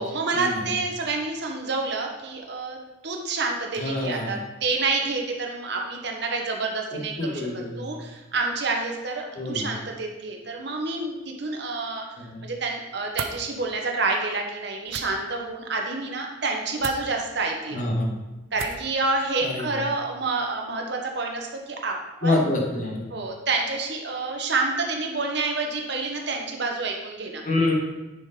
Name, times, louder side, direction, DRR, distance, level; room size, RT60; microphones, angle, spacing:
voice 1, 0.0-2.8 3.0-7.4 7.8-12.0 12.4-17.8 18.5-21.9 22.2-22.4 23.1-27.4, right 3 dB, 55° right, 2 dB, 1.1 m, -28 dB
voice 2, 3.8-4.4 6.9-8.0 9.3-9.7 12.2-12.4 17.7-18.2 19.4-19.8 22.2-23.1 27.4-27.7, left 2 dB, 40° left, -1 dB, 1.3 m, -27 dB
sound 1, 13.1-13.4 14.9-15.1 16.8-17.0 18.5-18.9, right 6 dB, 80° right, 0.6 m, -33 dB
9.7 x 5.0 x 3.7 m, 1.0 s
head